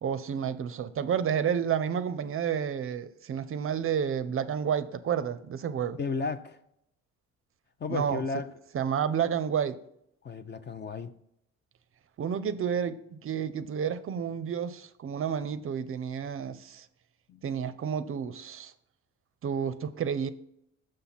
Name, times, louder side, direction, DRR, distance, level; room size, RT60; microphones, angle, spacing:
voice 1, 0.0-6.0 7.9-8.2 8.7-9.8 12.2-16.9 17.4-18.7 19.4-20.3, right 8 dB, 45° right, 0.5 m, -30 dB
voice 2, 6.0-6.6 7.8-8.5 10.2-11.1 17.3-17.4, left 4 dB, 35° left, 0.6 m, -33 dB
6.5 x 5.6 x 4.1 m
cardioid pair, 90°, 30 cm